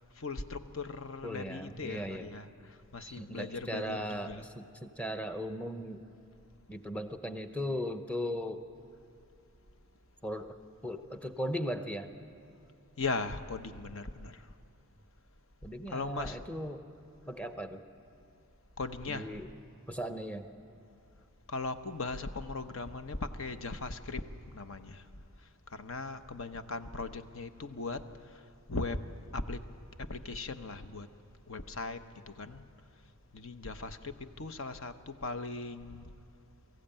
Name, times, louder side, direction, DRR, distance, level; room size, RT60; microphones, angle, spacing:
voice 1, 0.2-4.4 13.0-14.5 15.9-16.4 18.8-19.4 21.5-25.0 25.7-28.4 28.7-29.0 29.3-29.6 30.0-31.1 31.5-32.6 33.3-36.1, left 3 dB, 65° left, 9 dB, 0.9 m, -39 dB
voice 2, 1.2-2.3 3.0-6.0 6.7-8.6 10.2-10.5 10.8-12.1 15.6-16.8 17.3-17.8 19.1-19.5 19.9-20.5, equal, 5° left, 7 dB, 0.8 m, -37 dB
23.0 x 15.0 x 8.9 m, 2.6 s
head